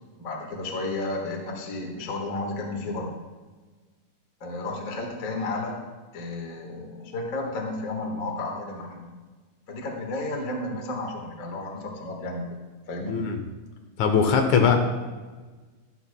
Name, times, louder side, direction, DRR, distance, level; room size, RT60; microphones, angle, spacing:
voice 1, 0.2-3.1 4.4-5.8 6.1-9.0 9.7-12.4 12.9-13.1 14.6-14.8, left 2 dB, 50° left, 0 dB, 1.0 m, -32 dB
voice 2, 13.1-13.4 14.0-14.8, left 6 dB, 70° left, 4 dB, 2.0 m, -20 dB
13.0 x 11.5 x 2.2 m, 1.3 s
omnidirectional pair, 3.9 m